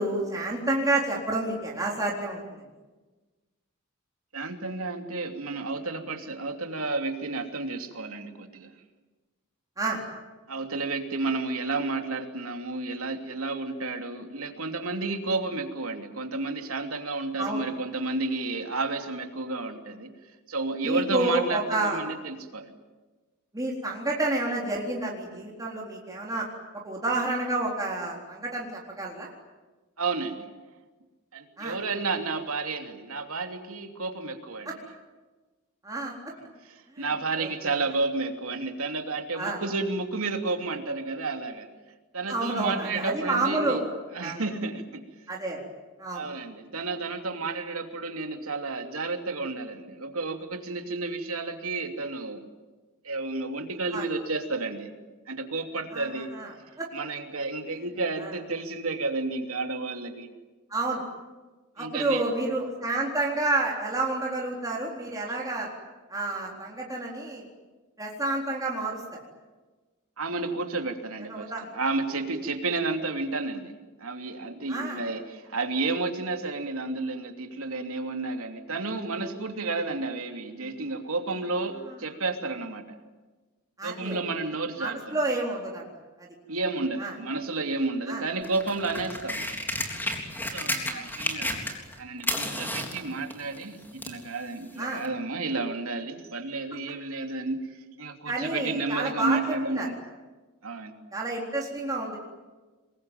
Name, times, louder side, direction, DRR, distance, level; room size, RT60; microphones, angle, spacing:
voice 1, 0.0-2.4 9.8-10.0 17.4-17.6 20.8-22.0 23.5-26.5 26.8-29.3 31.6-31.8 34.7-34.8 35.8-36.1 37.0-37.1 37.4-37.7 39.3-39.6 42.3-43.8 44.2-44.4 45.3-45.6 46.0-46.3 53.9-54.0 55.9-56.5 56.8-56.9 58.2-58.3 60.7-61.0 61.8-65.7 66.1-67.4 68.0-69.2 71.3-71.7 74.7-75.0 83.8-84.2 84.8-85.8 87.0-87.1 88.1-88.2 90.6-91.1 94.8-95.0 98.3-99.9 101.1-102.2, right 2 dB, 15° right, -3 dB, 3.9 m, -29 dB
voice 2, 4.3-8.7 10.5-20.1 20.5-22.7 30.0-30.5 31.3-34.7 36.6-41.7 42.1-43.8 44.1-45.0 46.1-52.4 53.0-54.9 55.3-56.3 56.9-60.3 61.8-62.3 65.3-65.4 70.2-73.7 74.0-83.0 83.8-85.2 86.5-89.5 90.5-91.6 92.0-97.7 98.0-100.0 100.6-100.9, right 3 dB, 75° right, 5 dB, 3.0 m, -31 dB
sound 1, 88.4-91.9 92.2-94.2 95.0-95.1, left 1 dB, 10° left, 3.7 m, -32 dB
26.5 x 22.5 x 9.3 m, 1.3 s
head